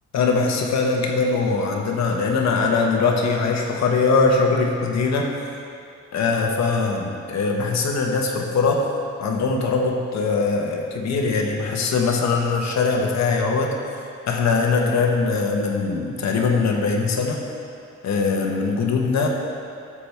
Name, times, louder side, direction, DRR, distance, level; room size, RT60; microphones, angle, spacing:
voice 1, 0.1-5.3 6.1-8.9 9.2-13.7 14.3-17.4 18.0-19.3, left 4 dB, 65° left, 1 dB, 1.4 m, -21 dB
12.0 x 7.3 x 3.5 m, 2.5 s
cardioid pair, 90°, 30 cm